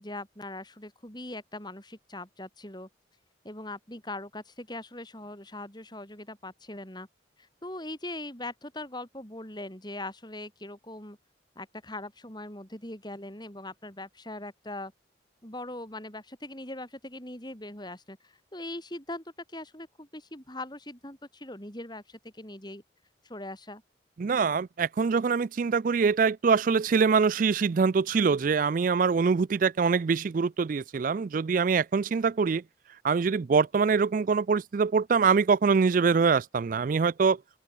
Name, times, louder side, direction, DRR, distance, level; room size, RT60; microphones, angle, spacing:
voice 1, 0.0-2.9 3.4-7.1 7.4-11.2 11.5-14.9 15.4-22.8 23.2-23.8, left 1 dB, 20° left, 4.9 m, -41 dB
voice 2, 24.2-32.6 33.0-37.4, right 5 dB, 45° right, 0.3 m, -24 dB
open air
head